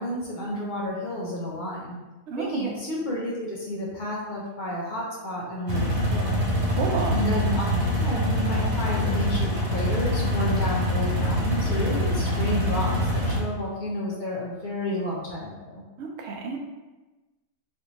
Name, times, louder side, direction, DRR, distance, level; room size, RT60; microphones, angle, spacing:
voice 1, 0.0-2.0 2.4-6.3 7.1-15.8, left 1 dB, 55° left, -4 dB, 0.6 m, -31 dB
voice 2, 2.3-2.8 6.6-7.2 16.0-16.6, right 3 dB, 65° right, 2 dB, 0.8 m, -30 dB
sound 1, 5.7-13.4, equal, 40° right, 0.5 m, -25 dB
3.3 x 2.6 x 2.9 m, 1.1 s
omnidirectional pair, 1.4 m